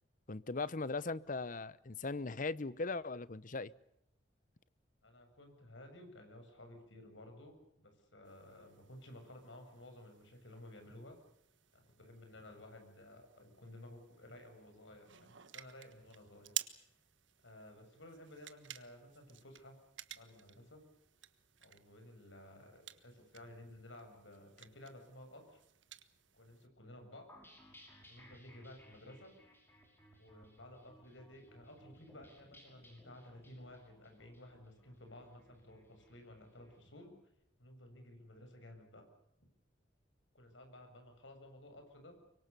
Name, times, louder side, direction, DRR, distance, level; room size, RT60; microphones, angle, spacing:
voice 1, 0.3-3.7, left 3 dB, 45° left, 0.9 m, -39 dB
voice 2, 5.0-11.2 11.7-16.6 17.4-19.8 20.1-20.8 21.6-25.6 26.3-27.3 28.1-29.3 30.2-37.1 37.6-39.0 40.3-42.2, left 1 dB, 85° left, 7.3 m, -55 dB
sound 1, 8.2-26.7, right 13 dB, 85° right, 1.5 m, -52 dB
sound 2, 27.3-36.7, equal, 10° left, 6.1 m, -62 dB
25.0 x 23.5 x 6.8 m
head